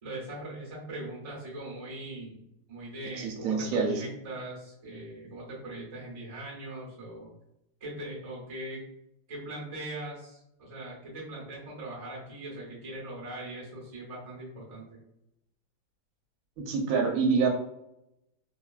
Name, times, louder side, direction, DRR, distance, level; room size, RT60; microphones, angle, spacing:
voice 1, 0.0-2.4 2.7-7.3 7.8-8.8 9.3-15.0, right 1 dB, 30° right, -4 dB, 0.7 m, -40 dB
voice 2, 3.2-3.9 16.7-17.5, right 5 dB, 80° right, 2 dB, 1.3 m, -26 dB
3.5 x 2.2 x 2.3 m, 0.84 s
omnidirectional pair, 2.2 m